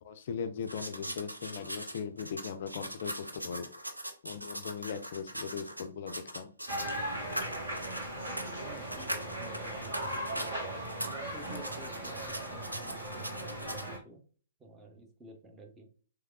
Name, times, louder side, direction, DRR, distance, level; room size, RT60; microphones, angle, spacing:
voice 1, 0.0-3.7 4.2-6.5 7.3-7.5 9.0-9.1, left 7 dB, 50° left, 0.3 m, -39 dB
sound 1, 0.6-7.0 7.3-10.6 10.8-13.9, right 1 dB, 90° right, 0.5 m, -41 dB
sound 2, 6.7-14.0, right 1 dB, 65° right, 1.6 m, -38 dB
voice 2, 8.6-10.5 11.0-14.2 14.6-15.9, right 1 dB, 15° right, 0.7 m, -52 dB
3.3 x 3.1 x 2.3 m
figure-of-eight pair, 115°, 0 cm